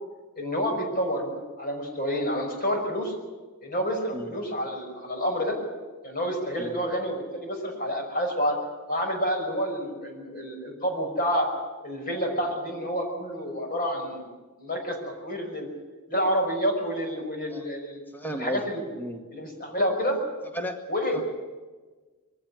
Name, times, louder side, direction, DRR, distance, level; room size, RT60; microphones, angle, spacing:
voice 1, 0.4-3.2 3.6-5.6 6.0-8.6 8.9-11.5 11.8-14.3 14.6-15.7 16.1-18.8 19.3-20.2 20.9-21.2, equal, 40° left, 3 dB, 5.7 m, -29 dB
voice 2, 17.2-17.7 18.1-18.6 18.9-19.2 20.5-20.8 21.1-21.2, equal, 10° left, 4 dB, 2.0 m, -34 dB
23.0 x 16.0 x 9.7 m, 1.3 s
head